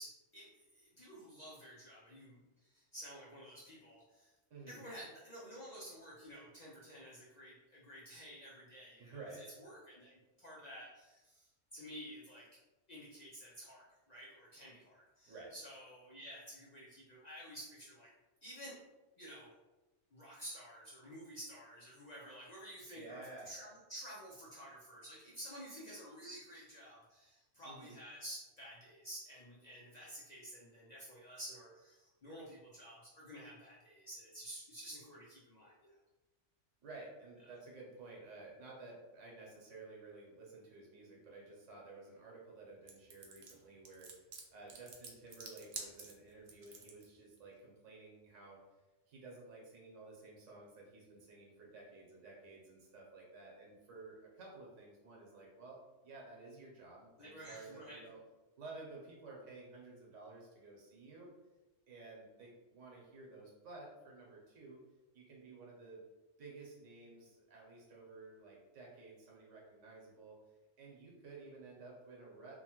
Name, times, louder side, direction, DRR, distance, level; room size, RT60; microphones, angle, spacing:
voice 1, 0.0-4.3 4.7-12.5 12.9-18.1 18.4-18.8 19.2-19.5 20.1-36.0 57.2-58.1, equal, 55° left, -5 dB, 0.4 m, -51 dB
voice 2, 9.0-9.4 15.3-15.5 23.0-23.5 27.6-28.0 36.8-48.6 49.1-58.2 58.6-61.3 61.9-64.8 65.1-66.0 66.4-70.4 70.8-72.6, right 3 dB, 85° right, -3 dB, 1.2 m, -53 dB
sound 1, 42.9-47.0, right 5 dB, 65° right, 0.8 m, -49 dB
2.9 x 2.2 x 2.9 m, 1.1 s
omnidirectional pair, 1.2 m